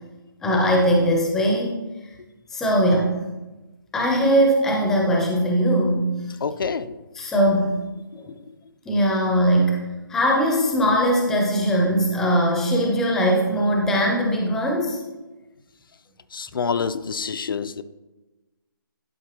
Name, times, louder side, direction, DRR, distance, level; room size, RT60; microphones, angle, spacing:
voice 1, 0.4-1.7 2.5-3.3 3.9-6.1 7.1-7.7 8.9-9.8 10.1-15.0, equal, 5° left, -1 dB, 0.5 m, -20 dB
voice 2, 6.4-7.0 16.3-17.8, left 5 dB, 70° left, 12 dB, 0.4 m, -27 dB
10.5 x 4.4 x 2.9 m, 1.1 s
hypercardioid pair, 165°, 12 cm